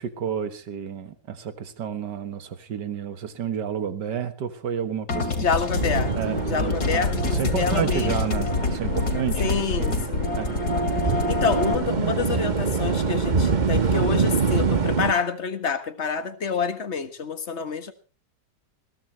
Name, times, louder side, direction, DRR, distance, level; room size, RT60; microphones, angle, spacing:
voice 1, 0.0-5.5 6.1-9.5 9.8-10.0 10.3-10.8, right 8 dB, 75° right, 10 dB, 2.1 m, -30 dB
sound 1, 5.1-11.7, left 3 dB, 60° left, 2.9 m, -26 dB
voice 2, 5.4-6.1 6.5-8.2 9.4-10.3 11.0-17.9, left 5 dB, 40° left, 9 dB, 1.7 m, -28 dB
sound 2, 5.7-15.1, right 4 dB, 30° right, 1.0 m, -26 dB
20.5 x 16.5 x 3.2 m, 0.35 s
omnidirectional pair, 1.9 m